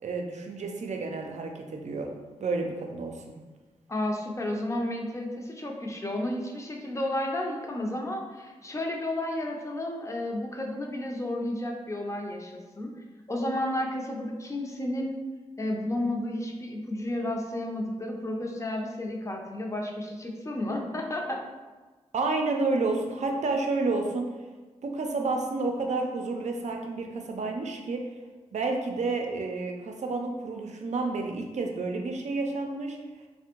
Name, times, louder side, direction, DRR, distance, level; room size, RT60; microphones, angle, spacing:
voice 1, 0.0-2.1 2.4-3.3 22.1-24.3 24.8-28.0 28.5-33.0, right 3 dB, 65° right, 2 dB, 0.5 m, -30 dB
voice 2, 3.9-12.9 13.3-15.2 15.6-21.4, left 1 dB, 25° left, 0 dB, 0.6 m, -32 dB
3.3 x 2.1 x 2.9 m, 1.3 s
cardioid pair, 50°, 13 cm